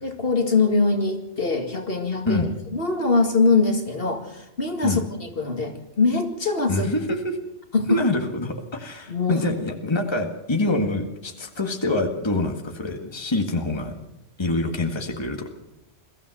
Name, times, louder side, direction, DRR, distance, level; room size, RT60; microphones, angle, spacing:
voice 1, 0.0-2.5 2.7-6.9 7.7-8.0 9.1-9.4, left 3 dB, 55° left, 5 dB, 2.3 m, -22 dB
voice 2, 6.7-7.4 7.9-13.9 14.4-15.5, left 2 dB, 25° left, 4 dB, 1.8 m, -25 dB
22.5 x 14.5 x 7.8 m, 0.90 s
omnidirectional pair, 1.2 m